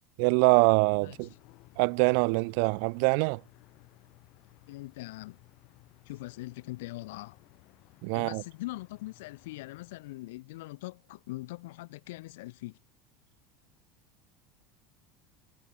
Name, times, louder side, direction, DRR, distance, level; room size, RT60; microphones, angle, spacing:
voice 1, 0.2-1.3 1.8-3.4 8.0-8.4, right 40 dB or more, 65° right, 0.4 m, -24 dB
sound 1, 1.1-10.2, left 24 dB, 55° left, 4.9 m, -59 dB
voice 2, 4.7-5.4 6.1-7.4 8.1-12.8, left 20 dB, 85° left, 2.7 m, -41 dB
supercardioid pair, 145°, 0 cm